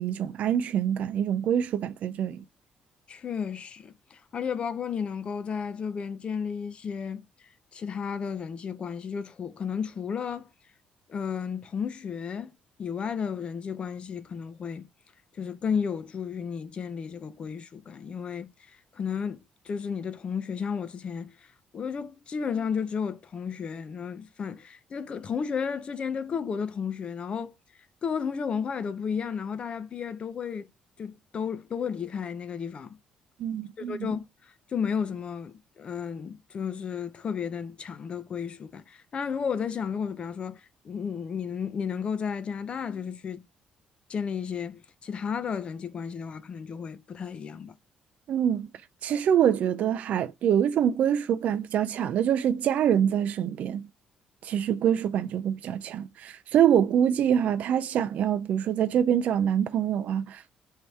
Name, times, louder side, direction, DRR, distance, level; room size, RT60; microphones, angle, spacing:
voice 1, 0.0-2.4 33.4-34.1 48.3-48.7 49.0-53.9 54.4-60.6, right 9 dB, 65° right, 0.3 m, -25 dB
voice 2, 3.1-7.2 7.7-10.5 11.1-12.5 12.8-14.9 15.4-18.5 18.9-21.3 21.7-27.5 28.0-30.7 31.0-33.0 33.8-34.2 34.7-43.4 44.1-47.7, left 6 dB, 40° left, 0.5 m, -33 dB
3.3 x 2.7 x 4.4 m
cardioid pair, 105°, 3 cm